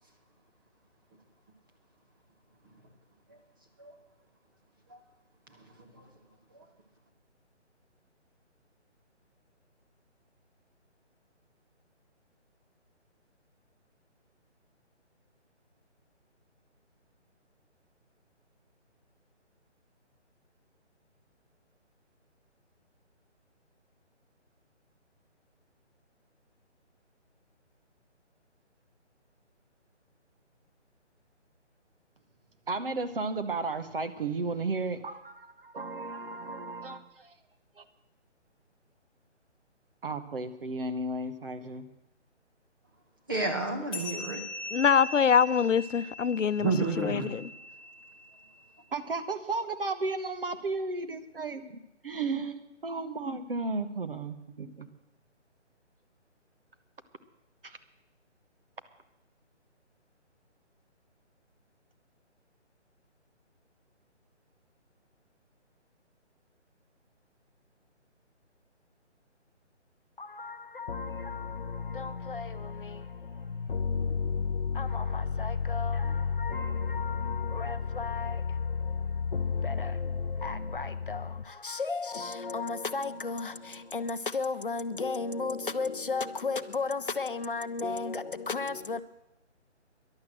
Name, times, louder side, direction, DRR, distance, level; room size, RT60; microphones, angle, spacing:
voice 1, 32.7-37.3 37.8-37.9 40.0-41.9 48.9-54.9 57.6-57.8, right 3 dB, 50° right, 1.2 m, -34 dB
voice 2, 43.3-44.4 46.6-47.4, right 3 dB, 20° right, 1.1 m, -30 dB
sound 1, 43.9-48.8, left 2 dB, 5° left, 1.1 m, -41 dB
voice 3, 44.7-46.7 47.0-47.5, left 7 dB, 85° left, 0.7 m, -24 dB
voice 4, 70.2-89.0, left 4 dB, 50° left, 0.6 m, -32 dB
13.0 x 11.0 x 7.6 m
hypercardioid pair, 170°, 36 cm